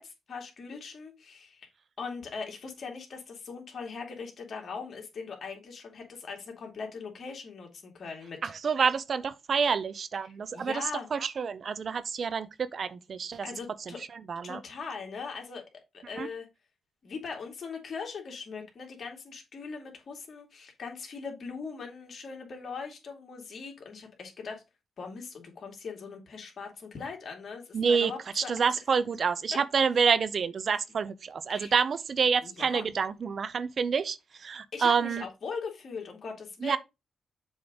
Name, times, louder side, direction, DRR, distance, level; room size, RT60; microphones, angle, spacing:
voice 1, 0.0-1.7 2.0-8.4 10.2-11.1 13.4-14.0 14.4-15.6 15.9-16.5 17.0-24.6 25.0-28.5 31.5-31.7 32.4-32.9 34.7-36.8, left 5 dB, 60° left, 2.6 m, -40 dB
voice 2, 8.4-10.8 11.1-13.5 13.9-14.6 16.2-16.3 27.7-35.2 36.6-36.8, right 6 dB, 60° right, 0.6 m, -28 dB
7.1 x 3.8 x 5.1 m
cardioid pair, 65°, 0 cm